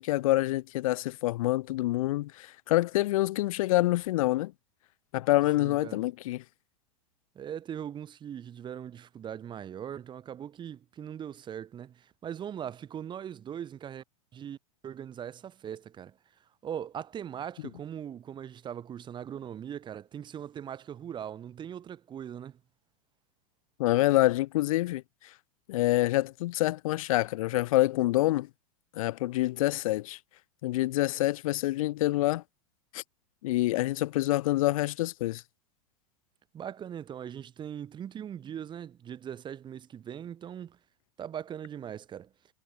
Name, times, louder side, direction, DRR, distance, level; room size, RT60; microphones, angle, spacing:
voice 1, 0.0-4.5 5.1-6.4 23.8-25.0 25.7-28.5 29.0-30.2 30.6-32.4 32.9-33.0 33.4-35.4, left 17 dB, 70° left, 0.7 m, -26 dB
voice 2, 5.6-6.0 7.3-14.0 14.3-14.6 14.8-16.2 16.6-22.6 36.5-40.8 41.2-42.3, right 9 dB, 25° right, 1.0 m, -40 dB
hypercardioid pair, 110°, 19 cm